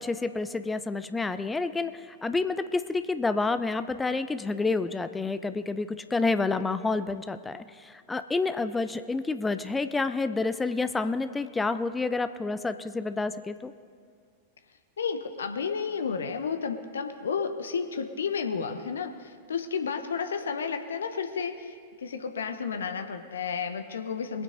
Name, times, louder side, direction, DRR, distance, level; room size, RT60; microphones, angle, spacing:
voice 1, 0.0-13.7, left 3 dB, 10° left, 11 dB, 0.5 m, -29 dB
voice 2, 15.0-24.4, left 6 dB, 70° left, 8 dB, 0.8 m, -32 dB
21.5 x 9.0 x 3.8 m, 2.1 s
figure-of-eight pair, 90°, 0 cm